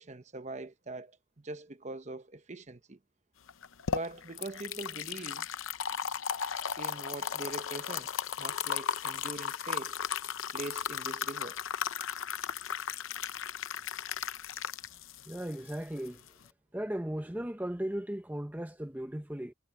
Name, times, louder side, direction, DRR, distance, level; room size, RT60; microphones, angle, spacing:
voice 1, 0.0-3.0 3.9-5.5 6.8-10.0 10.5-11.6, right 2 dB, 35° right, 0.9 m, -42 dB
sound 1, 3.5-16.5, left 8 dB, 80° left, 0.7 m, -36 dB
voice 2, 15.3-16.2 16.7-19.5, right 1 dB, 10° right, 0.7 m, -36 dB
head